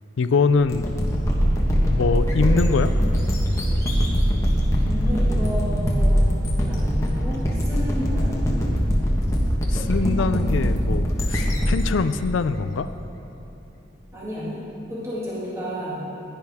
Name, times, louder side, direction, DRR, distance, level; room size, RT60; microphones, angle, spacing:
voice 1, 0.2-0.9 1.7-2.9 9.7-12.9, left 4 dB, 75° left, 12 dB, 0.4 m, -23 dB
Growling, 0.6-6.9, equal, 80° right, 2.1 m, -23 dB
sound 1, 0.7-13.3, equal, 15° left, 1.2 m, -23 dB
voice 2, 4.8-8.4 14.1-16.0, equal, 15° right, -8 dB, 2.0 m, -32 dB
15.5 x 10.5 x 3.5 m, 3.0 s
head